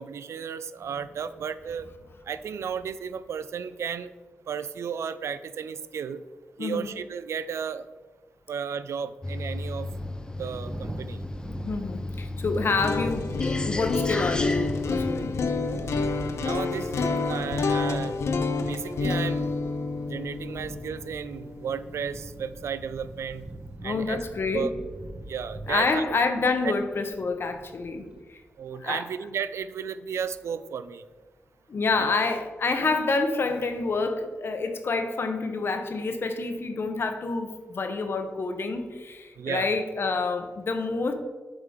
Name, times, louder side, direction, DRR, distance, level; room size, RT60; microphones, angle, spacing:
voice 1, 0.0-1.9 2.3-4.1 4.5-6.2 6.6-7.9 8.5-9.9 10.4-11.2 14.9-15.0 16.4-18.2 18.6-19.5 20.0-23.5 23.8-24.2 24.5-24.7 25.3-26.2 26.6-26.7 28.6-31.0 32.0-32.1 32.8-32.9 39.4-39.7, right 7 dB, 85° right, 13 dB, 0.3 m, -34 dB
voice 2, 6.6-6.9 11.6-13.4 13.7-15.5 20.5-20.6 23.8-24.7 25.6-28.4 28.8-29.1 31.7-41.1, left 3 dB, 60° left, 7 dB, 0.8 m, -28 dB
sound 1, 9.2-15.1, left 2 dB, 20° left, 0.4 m, -34 dB
Thunder, 9.8-28.2, right 1 dB, 20° right, 0.8 m, -43 dB
sound 2, 12.6-22.6, left 4 dB, 80° left, 0.5 m, -29 dB
7.9 x 3.7 x 5.0 m, 1.3 s
wide cardioid pair, 85°, 5 cm